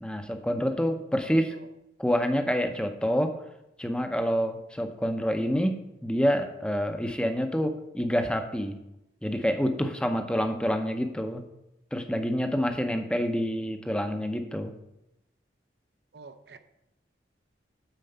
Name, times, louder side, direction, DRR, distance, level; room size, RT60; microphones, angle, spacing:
voice 1, 0.0-1.5 2.0-3.4 3.8-8.8 9.2-11.5 11.9-14.7, equal, 5° left, 6 dB, 0.6 m, -27 dB
voice 2, 1.2-1.7 16.1-16.6, right 4 dB, 65° right, 10 dB, 0.7 m, -49 dB
9.3 x 4.5 x 6.7 m, 0.86 s
head